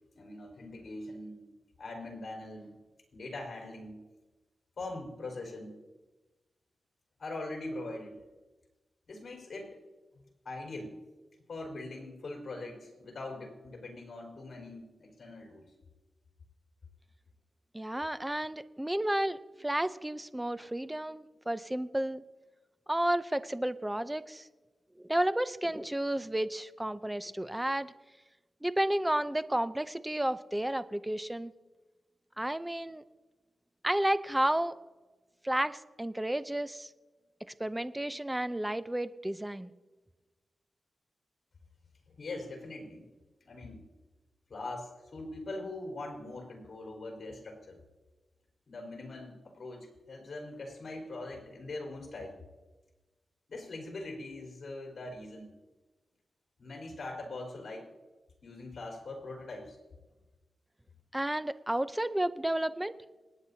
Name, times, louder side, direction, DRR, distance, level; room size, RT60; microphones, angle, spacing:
voice 1, 0.1-1.5 1.8-2.7 3.1-4.0 4.8-5.8 7.2-8.2 9.1-9.8 10.4-10.9 11.5-15.7 42.2-43.1 43.4-43.8 44.5-47.8 48.7-52.4 53.5-55.5 56.6-57.9 58.4-59.8, left 2 dB, 60° left, 1 dB, 4.5 m, -42 dB
voice 2, 17.7-22.2 22.9-24.5 25.0-27.9 28.6-31.5 32.4-33.0 33.8-34.8 35.4-36.9 37.6-39.7 61.1-62.9, right 1 dB, 10° right, 12 dB, 0.6 m, -32 dB
26.5 x 9.8 x 2.8 m, 1.2 s
cardioid pair, 80°, 0 cm